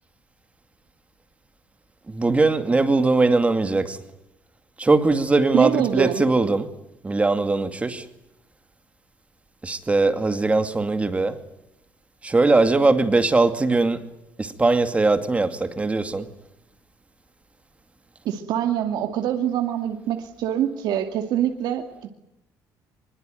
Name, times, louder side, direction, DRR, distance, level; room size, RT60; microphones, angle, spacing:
voice 1, 2.1-4.0 4.8-6.7 7.0-8.1 9.6-11.4 12.2-14.1 14.4-16.3, right 3 dB, 15° right, 2.3 m, -20 dB
voice 2, 5.5-6.2 18.2-22.1, right 10 dB, 75° right, 2.4 m, -25 dB
25.0 x 22.5 x 9.2 m
cardioid pair, 125°, 7 cm